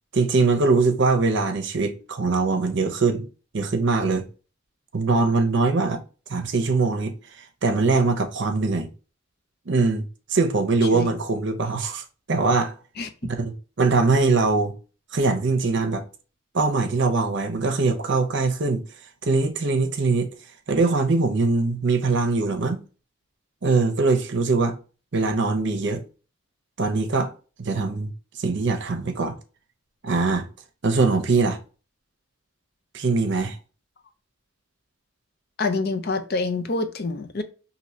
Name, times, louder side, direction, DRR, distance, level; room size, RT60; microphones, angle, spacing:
voice 1, 0.1-3.3 3.5-4.2 4.9-6.0 6.3-7.1 7.6-8.9 9.7-10.0 10.3-12.7 13.3-13.5 13.8-14.7 15.1-16.0 16.5-18.8 19.2-20.3 20.7-22.8 23.6-24.7 25.1-26.0 26.8-27.3 27.6-29.4 30.0-30.5 30.8-31.6 32.9-33.6, right 3 dB, 55° right, 0.6 m, -22 dB
voice 2, 35.6-37.4, left 3 dB, 50° left, 0.5 m, -26 dB
2.7 x 2.7 x 3.0 m
head